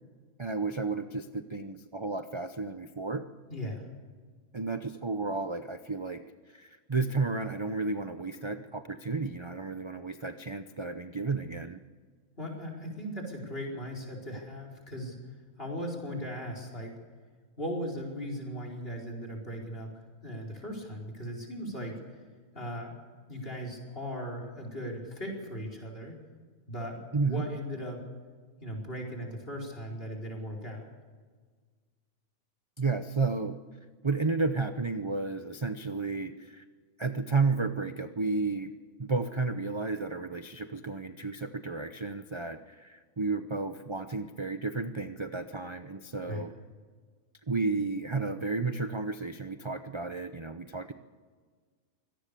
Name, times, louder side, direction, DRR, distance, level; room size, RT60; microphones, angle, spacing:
voice 1, 0.4-3.3 4.5-6.2 6.5-11.8 27.1-27.4 32.8-33.6 34.0-36.6 37.0-38.7 39.0-46.5 47.5-50.9, right 3 dB, 25° right, 9 dB, 0.7 m, -32 dB
voice 2, 3.5-3.8 12.4-15.1 15.6-16.9 17.6-19.9 20.2-22.0 22.5-22.9 23.3-26.1 26.7-28.0 28.6-30.9 46.3-46.4, equal, 45° left, 2 dB, 5.0 m, -38 dB
24.5 x 18.0 x 6.9 m, 1.5 s
omnidirectional pair, 1.4 m